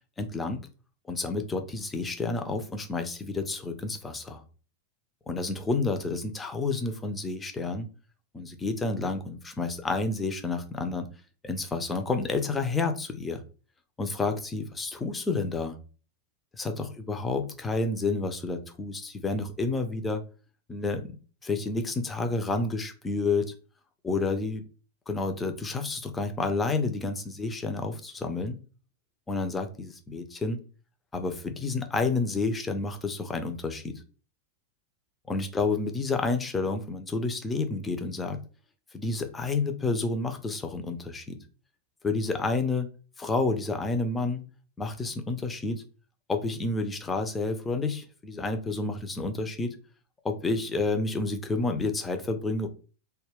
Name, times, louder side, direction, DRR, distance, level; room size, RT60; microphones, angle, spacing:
voice 1, 0.2-0.6 1.1-4.4 5.3-7.9 8.3-11.1 11.4-13.4 14.0-15.8 16.5-20.2 20.7-21.1 21.4-23.5 24.0-24.6 25.1-28.6 29.3-30.6 31.1-34.0 35.3-38.4 38.9-41.4 42.0-42.9 43.2-44.4 44.8-45.8 46.3-49.8 50.2-52.7, left 3 dB, 15° left, 6 dB, 0.4 m, -30 dB
2.2 x 2.1 x 3.4 m, 0.38 s
figure-of-eight pair, 90°, 0 cm